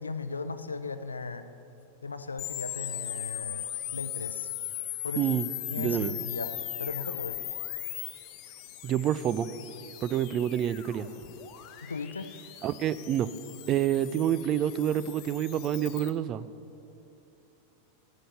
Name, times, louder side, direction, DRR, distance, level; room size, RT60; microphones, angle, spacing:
voice 1, 0.0-1.5 2.0-3.6 3.9-4.5 5.0-5.3 5.7-7.4 11.8-12.3, left 4 dB, 75° left, 11 dB, 0.6 m, -37 dB
sound 1, 2.4-16.1, left 13 dB, 40° left, 0.9 m, -39 dB
voice 2, 5.2-5.5 5.8-6.2 8.8-9.5 10.0-11.1 12.6-13.3 13.7-16.5, right 10 dB, 35° right, 15 dB, 0.4 m, -28 dB
11.5 x 9.1 x 6.8 m, 2.8 s
figure-of-eight pair, 90°, 0 cm